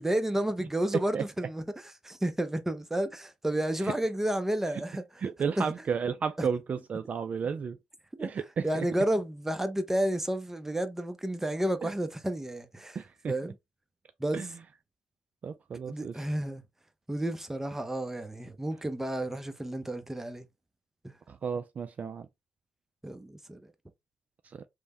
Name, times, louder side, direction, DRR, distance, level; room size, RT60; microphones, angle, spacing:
voice 1, 0.0-5.2 5.6-5.7 6.4-6.5 8.2-8.3 8.6-13.0 13.3-13.5 14.2-14.4 15.8-16.6 17.1-20.5 21.0-21.1 23.0-23.7, right 1 dB, 10° right, 0.6 m, -31 dB
voice 2, 5.2-7.8 8.2-8.9 13.0-13.3 14.3-14.5 15.4-16.1 21.3-22.3 24.5-24.7, right 6 dB, 45° right, 0.3 m, -32 dB
3.2 x 2.1 x 2.9 m
hypercardioid pair, 50°, 3 cm